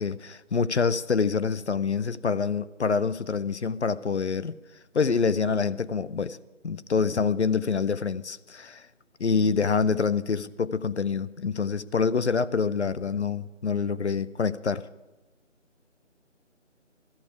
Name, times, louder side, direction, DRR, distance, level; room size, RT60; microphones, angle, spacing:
voice 1, 0.0-4.5 4.9-6.4 6.6-8.9 9.2-14.8, left 5 dB, 60° left, 0.5 m, -26 dB
13.0 x 6.8 x 9.6 m
figure-of-eight pair, 160°, 38 cm